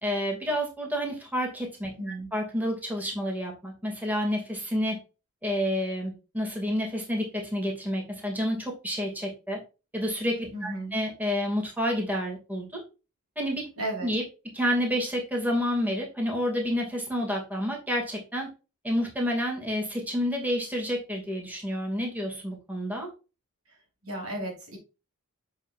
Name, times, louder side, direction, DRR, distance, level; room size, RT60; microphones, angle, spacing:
voice 1, 0.0-1.9 2.3-5.0 5.4-9.6 9.9-12.8 13.4-13.7 14.0-14.2 14.5-18.5 18.8-23.1, equal, 10° right, 0 dB, 2.6 m, -29 dB
voice 2, 2.0-2.3 10.5-11.0 13.8-14.1 24.0-24.8, right 1 dB, 70° right, 0 dB, 4.5 m, -34 dB
8.0 x 6.9 x 2.6 m, 0.30 s
head